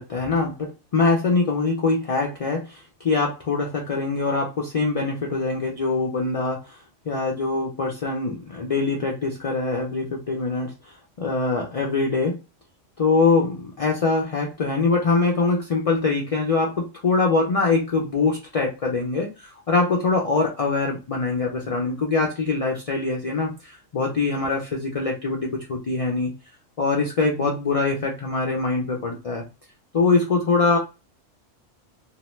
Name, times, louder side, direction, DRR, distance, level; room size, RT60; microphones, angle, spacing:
voice 1, 0.0-6.8 7.1-10.7 11.2-12.4 13.0-26.3 26.8-29.4 29.9-30.8, left 3 dB, 65° left, -1 dB, 0.3 m, -23 dB
2.7 x 2.1 x 3.0 m, 0.29 s
omnidirectional pair, 1.3 m